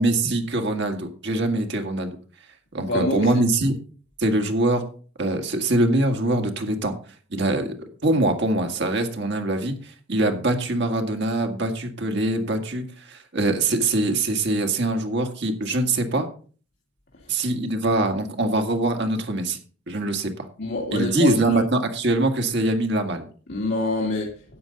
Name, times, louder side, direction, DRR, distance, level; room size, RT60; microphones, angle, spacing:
voice 1, 0.0-2.1 2.7-3.7 4.2-4.8 5.2-6.9 7.3-7.7 8.0-16.3 17.3-19.6 19.9-20.5 20.9-23.3, right 2 dB, 60° right, 5 dB, 1.9 m, -23 dB
voice 2, 2.8-3.3 20.6-21.6 23.5-24.3, left 2 dB, 60° left, -2 dB, 2.2 m, -25 dB
12.5 x 9.1 x 4.0 m, 0.40 s
head